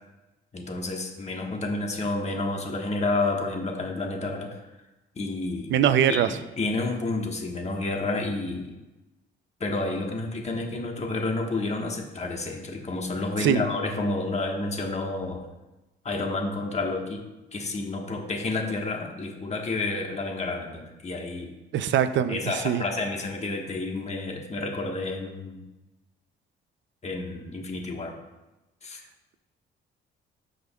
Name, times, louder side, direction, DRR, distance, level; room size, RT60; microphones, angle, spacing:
voice 1, 0.5-4.6 5.1-5.7 6.1-6.3 6.6-8.8 9.6-15.4 16.0-17.2 17.5-21.5 22.3-25.6 27.0-28.2 28.8-29.0, left 2 dB, 35° left, 2 dB, 1.3 m, -30 dB
voice 2, 5.7-6.3 13.4-13.6 21.7-22.8, right 9 dB, 70° right, 11 dB, 0.5 m, -22 dB
13.0 x 5.1 x 2.3 m, 1.0 s
cardioid pair, 90°, 20 cm